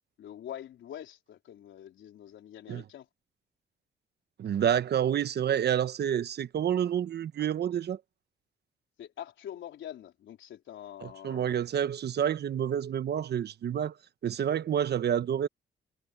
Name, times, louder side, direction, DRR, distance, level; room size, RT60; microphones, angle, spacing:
voice 1, 0.2-3.1 9.0-11.5, left 11 dB, 75° left, 4.0 m, -44 dB
voice 2, 4.4-8.0 11.0-13.9 14.2-15.5, right 9 dB, 55° right, 1.1 m, -28 dB
cardioid pair, 90°, 20 cm